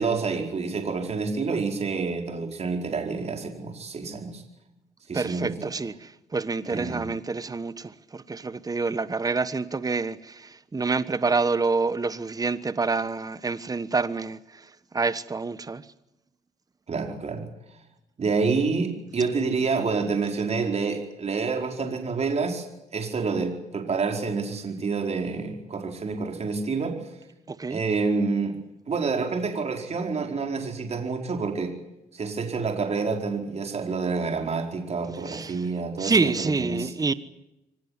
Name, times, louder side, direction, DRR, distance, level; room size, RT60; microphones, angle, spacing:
voice 1, 0.0-4.4 5.1-5.7 6.6-7.1 16.9-17.5 18.2-22.7 22.9-27.0 27.7-28.6 28.9-31.7 32.1-36.9, right 4 dB, 40° right, 4.7 m, -28 dB
voice 2, 5.1-15.8 27.5-27.8 35.2-35.7 36.0-37.1, right 4 dB, 25° right, 1.2 m, -27 dB
24.5 x 18.5 x 9.7 m
cardioid pair, 85°, 16 cm